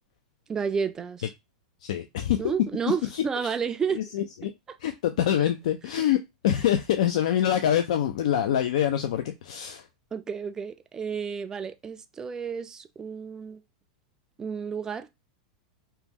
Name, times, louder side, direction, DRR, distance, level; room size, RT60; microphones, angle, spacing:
voice 1, 0.5-1.2 2.4-4.0 10.1-13.6 14.4-15.1, right 6 dB, 15° right, 0.3 m, -31 dB
voice 2, 1.8-2.4 2.9-3.2 4.0-4.5 4.8-6.2 6.4-9.9, left 10 dB, 75° left, 0.3 m, -25 dB
2.8 x 2.1 x 3.5 m
supercardioid pair, 135°, 4 cm